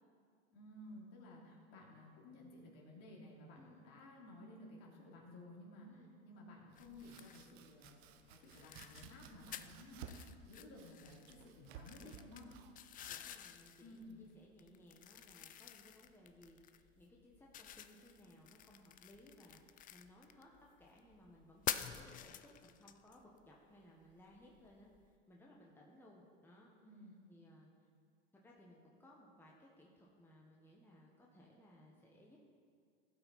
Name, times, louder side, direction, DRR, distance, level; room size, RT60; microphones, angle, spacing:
voice 1, 0.5-12.5 13.8-14.2 26.8-27.1, left 1 dB, 50° left, -3 dB, 2.8 m, -56 dB
Domestic sounds home sounds, 6.7-14.4, right 7 dB, 70° right, 0.8 m, -57 dB
sound 1, 6.8-25.2, left 10 dB, 25° left, 0.4 m, -50 dB
voice 2, 13.1-20.5 20.8-24.9 25.3-26.7 27.3-27.7 28.4-32.4, left 1 dB, 5° left, -3 dB, 1.4 m, -62 dB
15.5 x 5.8 x 4.1 m, 2.1 s
hypercardioid pair, 100°, 32 cm